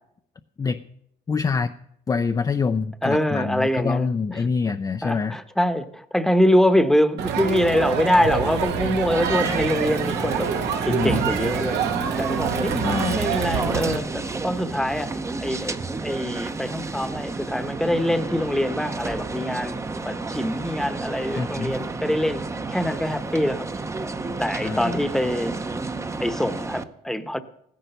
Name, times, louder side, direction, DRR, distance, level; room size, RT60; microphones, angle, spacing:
voice 1, 1.3-1.7 2.1-5.4 10.9-11.2 12.8-13.2 21.4-21.7 24.6-25.0, left 5 dB, 20° left, 8 dB, 0.5 m, -25 dB
voice 2, 3.0-4.1 5.0-11.8 12.2-19.8 20.0-22.4 22.7-23.7 24.0-24.1 24.4-25.5 26.2-27.4, left 1 dB, ahead, 10 dB, 1.0 m, -24 dB
Crowd, 7.2-14.0, right 7 dB, 85° right, 1.6 m, -26 dB
sound 1, 9.1-26.8, right 3 dB, 15° right, 0.8 m, -31 dB
15.5 x 10.0 x 6.7 m, 0.73 s
cardioid pair, 110°, 17 cm